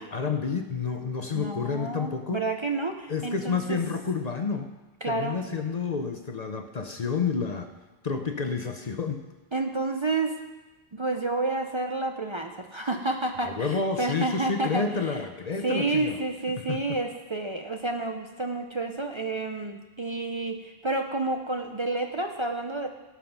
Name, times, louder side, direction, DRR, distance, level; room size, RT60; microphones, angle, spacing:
voice 1, 0.0-2.4 3.1-4.7 5.1-7.7 8.0-9.2 13.4-16.2 16.7-16.8, left 5 dB, 45° left, 6 dB, 0.7 m, -29 dB
voice 2, 1.3-3.8 5.0-5.4 9.5-10.4 10.9-15.2 15.6-22.9, right 2 dB, 35° right, 4 dB, 0.6 m, -30 dB
17.5 x 5.8 x 5.8 m, 1.1 s
omnidirectional pair, 1.1 m